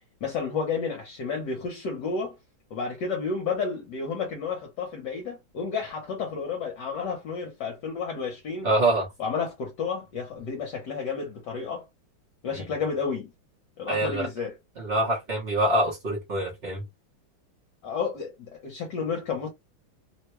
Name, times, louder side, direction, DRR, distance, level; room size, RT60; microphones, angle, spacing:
voice 1, 0.2-2.4 2.7-8.7 9.2-11.9 12.4-13.3 13.8-14.5 17.8-19.5, left 5 dB, 65° left, 1.3 m, -31 dB
voice 2, 8.6-9.1 13.9-14.3 14.8-16.8, right 1 dB, 45° right, 0.8 m, -25 dB
3.4 x 2.2 x 3.0 m
omnidirectional pair, 2.3 m